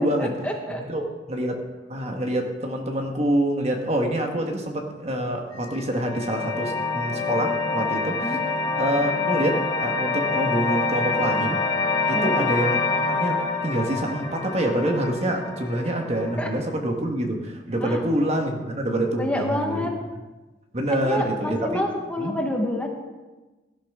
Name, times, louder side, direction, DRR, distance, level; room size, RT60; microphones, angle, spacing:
voice 1, 0.0-0.8 8.2-8.4 12.1-12.3 15.8-15.9 16.4-16.5 17.8-18.0 19.1-19.9 20.9-22.9, left 1 dB, 5° left, 1 dB, 1.4 m, -28 dB
voice 2, 0.9-8.2 8.8-11.6 12.1-19.8 20.7-21.8 22.2-22.3, right 1 dB, 35° right, 3 dB, 1.5 m, -26 dB
sound 1, 5.5-16.6, left 3 dB, 25° left, 1.6 m, -26 dB
17.5 x 11.5 x 3.7 m, 1.2 s
head